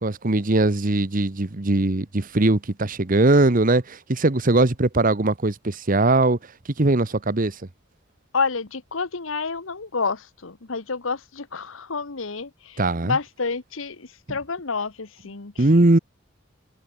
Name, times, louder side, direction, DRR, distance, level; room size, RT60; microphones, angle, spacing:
voice 1, 0.0-6.4 6.8-7.6 12.8-13.2 15.6-16.0, right 2 dB, 45° right, 1.1 m, -20 dB
voice 2, 8.3-15.9, left 4 dB, 80° left, 1.3 m, -29 dB
head